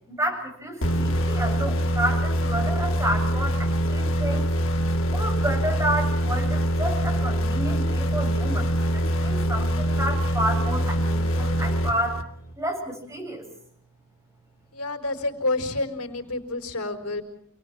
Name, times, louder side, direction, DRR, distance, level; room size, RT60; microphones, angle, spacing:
voice 1, 0.1-4.5 5.1-8.7 8.9-12.2 12.6-13.4, right 1 dB, 15° right, 1 dB, 8.0 m, -30 dB
sound 1, 0.8-12.5, equal, 65° left, 2.5 m, -24 dB
voice 2, 14.7-17.2, left 2 dB, 90° left, 6 dB, 4.7 m, -29 dB
28.5 x 20.5 x 7.5 m, 0.66 s
head